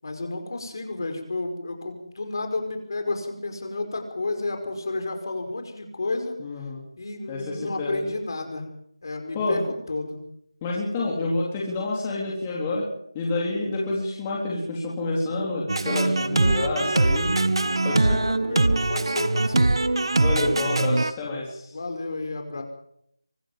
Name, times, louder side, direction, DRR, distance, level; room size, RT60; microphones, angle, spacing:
voice 1, 0.0-6.4 7.0-8.7 9.0-10.2 18.2-19.7 21.7-22.6, left 2 dB, 50° left, 5 dB, 5.2 m, -31 dB
voice 2, 6.4-6.8 7.3-8.0 9.3-9.6 10.6-12.9 13.1-17.3 17.8-18.2 20.2-21.7, left 2 dB, 15° left, -3 dB, 3.9 m, -28 dB
sound 1, 15.7-21.1, right 2 dB, 70° right, 1.5 m, -22 dB
24.5 x 14.0 x 7.7 m, 0.73 s
figure-of-eight pair, 170°, 3 cm